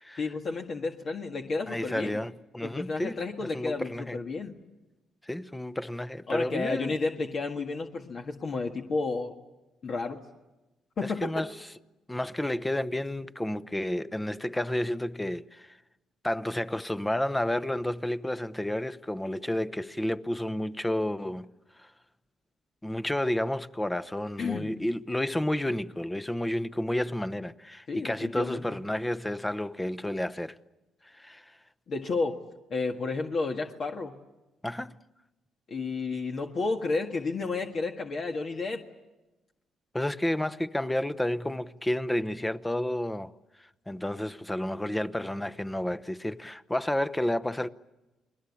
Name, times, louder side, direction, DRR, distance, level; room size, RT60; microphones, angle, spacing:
voice 1, 0.2-2.2 2.6-4.5 6.3-9.3 9.8-10.2 11.0-11.4 24.4-24.7 27.9-28.8 31.9-32.4 32.7-34.1 35.7-38.8, left 3 dB, 50° left, 1.8 m, -31 dB
voice 2, 1.7-4.2 5.2-6.9 11.0-11.5 12.1-15.8 16.2-21.5 22.8-30.6 31.0-31.5 34.6-35.0 39.9-43.3 43.6-47.7, left 1 dB, 10° left, 0.9 m, -31 dB
30.0 x 21.5 x 8.5 m
cardioid pair, 90°, 0 cm